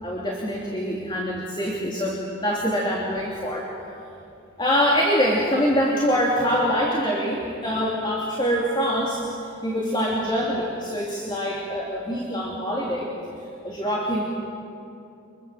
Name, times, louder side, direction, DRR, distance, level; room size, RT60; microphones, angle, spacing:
voice 1, 0.0-3.7 4.6-9.2 9.6-13.1 13.6-14.2, equal, 20° left, -3 dB, 3.0 m, -24 dB
29.0 x 26.0 x 7.6 m, 2.7 s
head